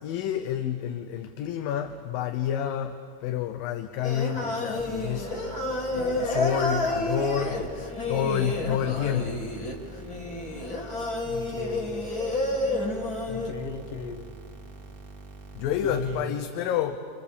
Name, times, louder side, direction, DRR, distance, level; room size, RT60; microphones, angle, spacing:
voice 1, 0.0-5.3 5.9-7.6 8.1-9.4 15.6-17.0, left 9 dB, 80° left, 2.6 m, -29 dB
Singing, 4.0-13.5, left 2 dB, 30° left, 2.6 m, -30 dB
sound 1, 4.8-16.2, right 3 dB, 35° right, 1.6 m, -45 dB
voice 2, 11.3-12.1 13.3-14.3 15.8-16.4, left 3 dB, 55° left, 1.8 m, -36 dB
28.0 x 28.0 x 6.9 m
omnidirectional pair, 4.0 m